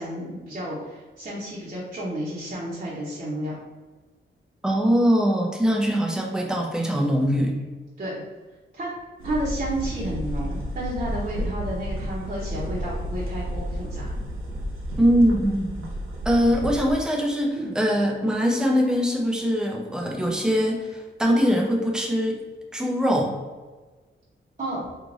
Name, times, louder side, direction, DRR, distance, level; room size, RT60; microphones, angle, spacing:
voice 1, 0.0-3.6 8.0-8.2 8.7-8.9 9.2-14.1 17.6-17.7 24.6-24.9, right 1 dB, 35° right, -8 dB, 0.9 m, -31 dB
voice 2, 4.6-7.6 15.0-15.9 16.2-22.4 22.7-23.3, equal, 5° right, 0 dB, 0.5 m, -22 dB
sound 1, 9.2-16.9, equal, 85° right, 1.0 m, -31 dB
3.2 x 2.4 x 3.9 m, 1.3 s
wide cardioid pair, 130°, 21 cm